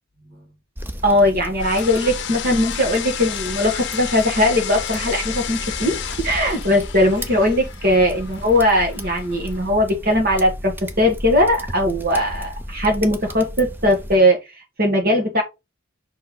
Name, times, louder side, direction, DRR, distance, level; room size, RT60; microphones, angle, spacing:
sound 1, 0.8-14.2, equal, 10° right, 0.6 m, -34 dB
voice 1, 1.0-15.4, left 1 dB, 45° right, 1.9 m, -19 dB
sound 2, 1.6-9.7, left 9 dB, 55° left, 0.7 m, -32 dB
5.6 x 4.5 x 3.8 m
head